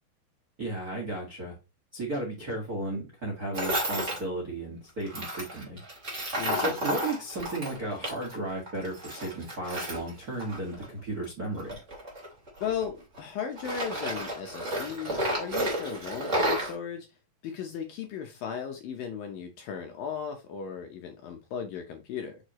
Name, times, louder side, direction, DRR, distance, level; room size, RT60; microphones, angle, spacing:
voice 1, 0.6-1.5 1.9-5.8 6.6-11.8, right 1 dB, 70° right, 0.8 m, -34 dB
Tools, 3.5-4.2 5.1-8.4 8.7-10.9 11.6-13.2 13.6-16.7, right 1 dB, 20° right, 2.0 m, -31 dB
voice 2, 6.4-6.8 12.6-17.1 17.4-22.4, left 7 dB, 75° left, 2.2 m, -36 dB
6.7 x 5.1 x 3.0 m
omnidirectional pair, 5.0 m